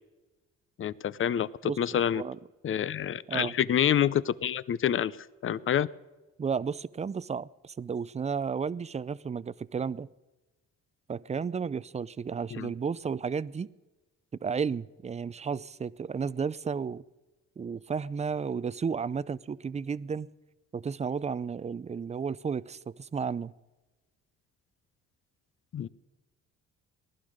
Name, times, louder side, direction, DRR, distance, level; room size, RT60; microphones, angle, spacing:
voice 1, 0.8-2.2 2.6-5.2 5.4-5.9 12.5-12.7 25.7-25.9, left 9 dB, 45° left, 19 dB, 0.6 m, -27 dB
voice 2, 6.4-10.1 11.1-13.7 14.4-17.0 17.6-20.3 20.7-23.5, right 6 dB, 20° right, 19 dB, 0.4 m, -33 dB
19.0 x 11.5 x 6.5 m, 1.1 s
cardioid pair, 90°, 30 cm